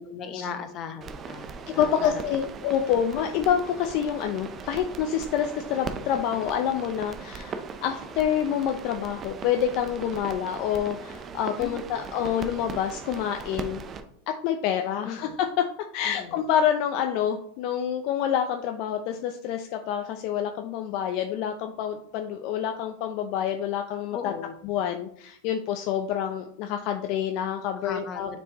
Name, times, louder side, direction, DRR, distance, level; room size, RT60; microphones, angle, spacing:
voice 1, 0.0-2.2 11.6-12.1 15.0-15.4 16.0-16.5 24.1-24.6 27.8-28.4, left 6 dB, 35° left, 8 dB, 0.8 m, -37 dB
sound 1, 1.0-14.0, right 5 dB, 30° right, 0.6 m, -39 dB
voice 2, 1.8-7.5 7.8-13.8 14.3-15.7 15.9-24.3 24.6-28.4, left 9 dB, 50° left, 5 dB, 0.5 m, -27 dB
7.1 x 4.5 x 3.0 m, 0.66 s
supercardioid pair, 125°, 0 cm